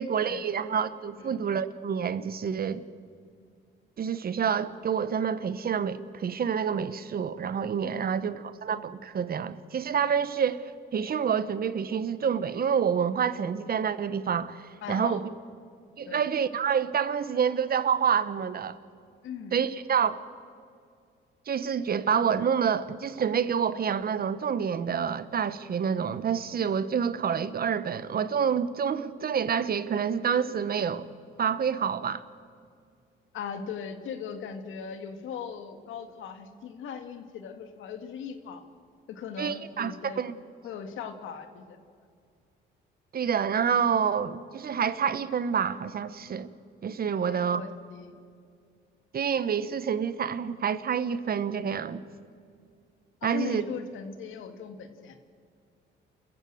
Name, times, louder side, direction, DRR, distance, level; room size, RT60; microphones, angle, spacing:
voice 1, 0.0-2.8 4.0-10.6 10.9-15.3 16.0-18.8 19.5-20.2 21.5-31.1 31.4-32.2 39.4-40.4 43.1-46.5 46.8-47.6 49.1-52.0 53.2-53.6, right 7 dB, 50° right, 1.1 m, -28 dB
voice 2, 14.8-15.2 16.1-16.2 19.2-19.5 33.3-38.6 39.1-40.2 40.6-41.8 47.2-48.2 53.2-55.2, left 6 dB, 85° left, 2.0 m, -39 dB
29.0 x 15.0 x 7.8 m
cardioid pair, 90°, 20 cm